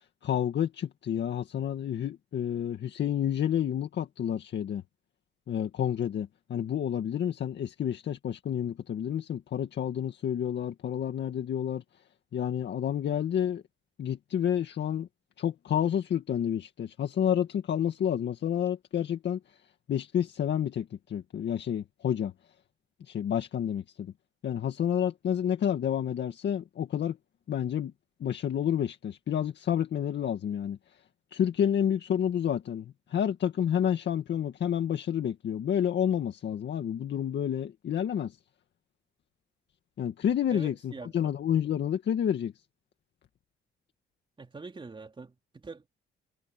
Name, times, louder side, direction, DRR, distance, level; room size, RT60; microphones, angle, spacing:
voice 1, 0.0-4.8 5.5-11.8 12.3-13.6 14.0-15.1 15.4-19.4 19.9-22.3 23.0-24.1 24.4-27.2 27.5-27.9 28.2-30.8 31.3-38.4 40.0-42.5, left 9 dB, 60° left, 2.0 m, -29 dB
voice 2, 40.5-41.3 44.4-45.9, right 4 dB, 25° right, 3.2 m, -44 dB
cardioid pair, 90°, 20 cm